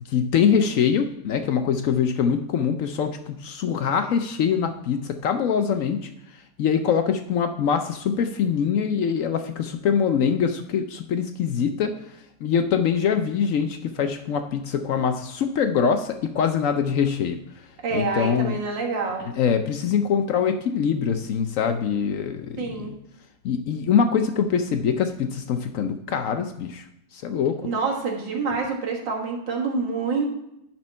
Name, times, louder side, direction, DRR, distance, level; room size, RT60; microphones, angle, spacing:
voice 1, 0.1-11.9 12.4-17.4 17.9-18.6 19.4-23.0 23.4-26.9 27.1-27.6, left 7 dB, 75° left, 8 dB, 0.7 m, -23 dB
voice 2, 17.8-19.3 22.6-22.9 27.6-30.3, right 4 dB, 80° right, 0 dB, 2.2 m, -27 dB
10.5 x 4.4 x 5.4 m, 0.83 s
omnidirectional pair, 2.0 m